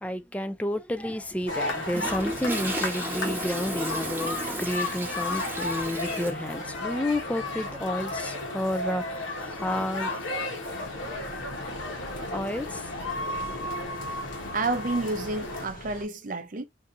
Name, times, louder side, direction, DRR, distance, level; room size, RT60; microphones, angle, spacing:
voice 1, 0.0-11.4 12.3-12.9, left 1 dB, 5° left, 0.3 m, -31 dB
Toilet flush, 1.0-6.3, right 1 dB, 10° right, 1.0 m, -34 dB
sound 1, 1.5-15.7, left 2 dB, 80° left, 1.1 m, -33 dB
sound 2, 10.6-16.1, left 1 dB, 45° left, 0.8 m, -44 dB
voice 2, 14.5-16.6, right 3 dB, 40° right, 0.6 m, -30 dB
3.9 x 2.6 x 2.6 m
head